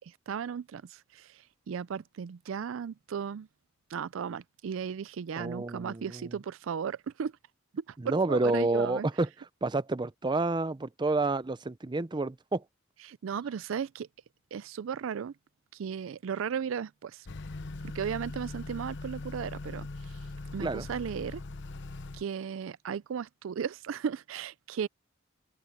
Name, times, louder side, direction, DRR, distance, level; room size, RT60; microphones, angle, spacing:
voice 1, 0.0-3.5 3.9-7.3 7.9-9.1 13.0-14.1 14.5-15.3 15.7-17.3 17.8-19.9 20.5-21.4 22.1-24.9, right 7 dB, 75° right, 0.4 m, -35 dB
voice 2, 5.4-6.1 8.0-9.3 9.6-12.6 20.6-20.9, right 2 dB, 20° right, 0.5 m, -29 dB
Motor vehicle (road) / Accelerating revving vroom, 17.3-22.2, left 2 dB, 60° left, 0.8 m, -40 dB
open air
head